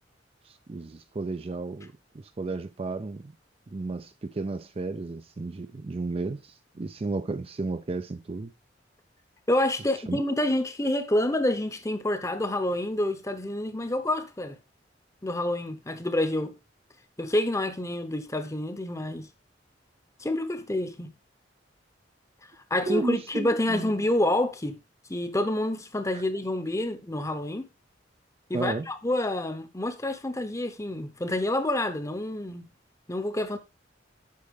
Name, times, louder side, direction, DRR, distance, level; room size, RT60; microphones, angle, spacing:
voice 1, 0.5-3.3 3.7-8.5 10.1-10.2 22.9-23.9 26.1-26.2 28.5-28.9, right 3 dB, 30° right, 0.4 m, -33 dB
voice 2, 9.5-14.6 15.2-16.5 17.2-19.3 20.2-21.1 22.7-24.8 25.1-27.7 28.5-32.7 33.1-33.6, left 1 dB, 15° left, 0.9 m, -28 dB
8.5 x 5.5 x 3.7 m
head